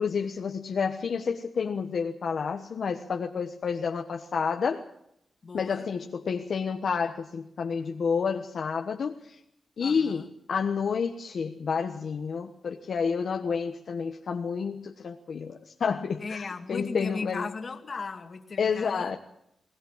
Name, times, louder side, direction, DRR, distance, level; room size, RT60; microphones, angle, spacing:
voice 1, 0.0-4.8 5.5-9.4 9.8-17.5 18.6-19.2, left 6 dB, 65° left, 1.2 m, -30 dB
voice 2, 5.4-5.9 9.8-10.2 16.2-19.2, left 4 dB, 45° left, 2.2 m, -37 dB
20.5 x 19.5 x 7.3 m
cardioid pair, 95°, 0 cm